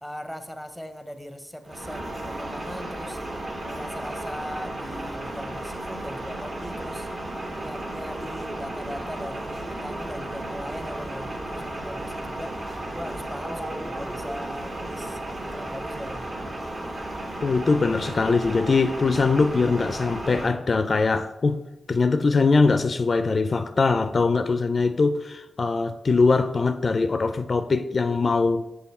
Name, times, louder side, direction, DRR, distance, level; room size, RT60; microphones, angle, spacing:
voice 1, 0.0-3.2 3.7-7.1 7.6-12.6 12.9-16.3, equal, ahead, 0.7 m, -39 dB
sound 1, 1.6-20.5, right 1 dB, 50° right, 1.2 m, -34 dB
voice 2, 17.4-21.6 21.9-28.7, left 4 dB, 50° left, 0.4 m, -22 dB
7.0 x 3.8 x 4.2 m
cardioid pair, 60°, 0 cm